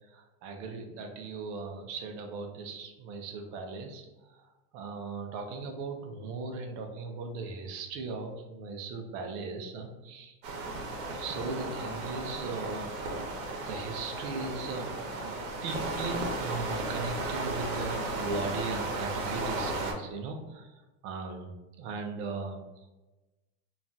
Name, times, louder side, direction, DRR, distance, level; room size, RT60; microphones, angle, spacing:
voice 1, 0.1-4.5 4.7-10.4 11.0-14.9 15.2-22.6, right 4 dB, 45° right, 4 dB, 0.5 m, -38 dB
sound 1, 10.4-19.9, right 2 dB, 85° right, 0.9 m, -35 dB
3.1 x 2.3 x 2.6 m, 1.1 s
supercardioid pair, 145°, 41 cm